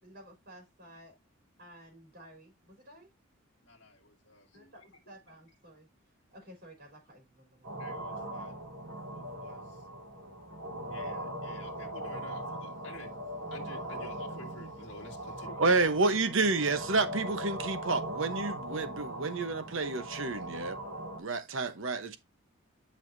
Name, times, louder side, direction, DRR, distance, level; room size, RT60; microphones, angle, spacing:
voice 1, 0.0-1.2 1.6-3.1 4.5-5.9 6.3-7.7, equal, 45° right, 3.9 m, -53 dB
voice 2, 3.6-4.7 7.8-8.5 9.1-9.8 10.9-13.1 13.5-16.7, left 2 dB, 55° left, 2.2 m, -50 dB
sound 1, 7.6-21.2, right 1 dB, 90° right, 3.5 m, -40 dB
voice 3, 15.6-20.8 21.2-22.2, right 3 dB, 60° right, 1.0 m, -29 dB
10.5 x 5.7 x 2.6 m
head